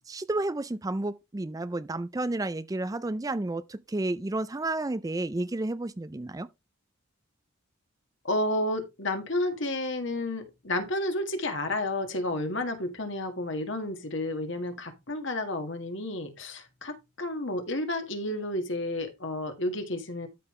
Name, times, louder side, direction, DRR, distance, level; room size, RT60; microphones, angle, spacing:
voice 1, 0.1-6.5, right 2 dB, 15° right, 0.4 m, -31 dB
voice 2, 8.2-20.3, left 1 dB, 60° left, 1.9 m, -31 dB
12.5 x 5.5 x 3.2 m
head